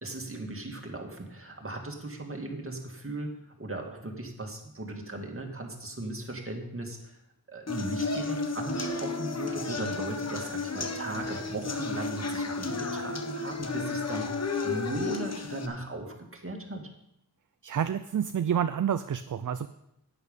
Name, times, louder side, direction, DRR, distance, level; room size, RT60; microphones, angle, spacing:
voice 1, 0.0-7.2 7.5-16.9, right 2 dB, 35° right, 2 dB, 2.2 m, -37 dB
sound 1, 7.7-15.7, left 4 dB, 40° left, 1.1 m, -33 dB
voice 2, 17.6-19.7, right 8 dB, 55° right, 11 dB, 0.5 m, -28 dB
10.5 x 8.9 x 5.4 m, 0.81 s
wide cardioid pair, 85°, 39 cm